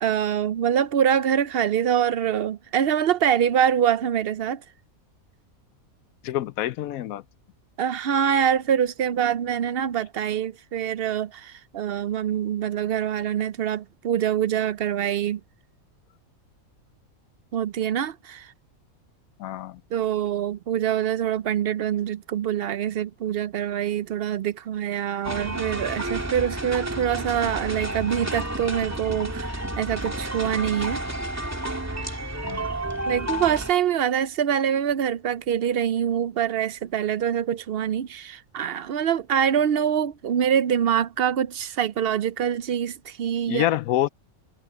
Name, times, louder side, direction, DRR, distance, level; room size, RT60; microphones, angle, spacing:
voice 1, 0.0-4.6 7.8-15.4 17.5-18.5 19.9-31.0 33.1-43.7, right 9 dB, 65° right, 0.6 m, -25 dB
voice 2, 6.2-7.2 19.4-19.8 32.4-32.7 43.5-44.1, left 13 dB, 80° left, 1.0 m, -26 dB
sound 1, 25.2-33.7, right 1 dB, 10° right, 2.4 m, -31 dB
omnidirectional pair, 1.5 m